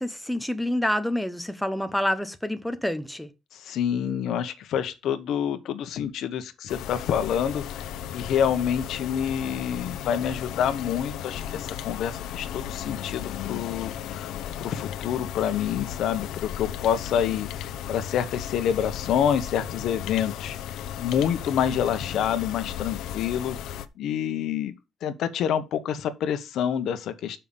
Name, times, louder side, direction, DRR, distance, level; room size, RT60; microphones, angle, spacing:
voice 1, 0.0-3.3, left 1 dB, 5° left, 0.8 m, -27 dB
voice 2, 3.5-7.6 8.1-14.3 14.6-20.6 21.0-24.7 25.0-27.4, left 9 dB, 70° left, 1.1 m, -27 dB
sound 1, 6.7-23.9, left 10 dB, 90° left, 0.7 m, -35 dB
7.0 x 5.7 x 5.4 m
cardioid pair, 145°, 0 cm